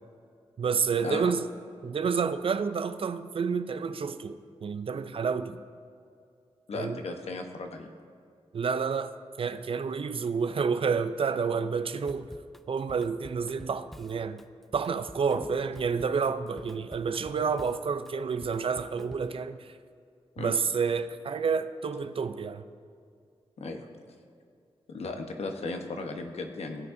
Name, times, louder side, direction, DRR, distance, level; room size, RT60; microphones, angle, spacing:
voice 1, 0.6-1.5 1.8-5.6 6.7-7.0 8.5-12.3 12.7-14.4 14.7-19.7 20.4-22.7, right 5 dB, 55° right, 0.4 m, -29 dB
voice 2, 6.7-7.9 15.3-15.5 20.4-20.5 23.6-23.9 24.9-26.9, left 3 dB, 70° left, 1.0 m, -36 dB
Drum kit / Drum, 12.1-19.4, equal, ahead, 0.4 m, -49 dB
16.5 x 8.1 x 2.6 m
wide cardioid pair, 80°, 11 cm